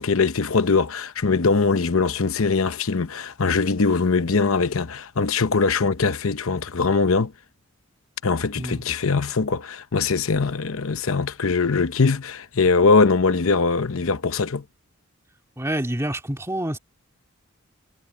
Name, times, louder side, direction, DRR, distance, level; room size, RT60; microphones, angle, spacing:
voice 1, 0.0-7.3 8.2-14.6, left 4 dB, 75° left, 0.8 m, -21 dB
voice 2, 15.6-16.8, right 1 dB, 15° right, 2.2 m, -27 dB
head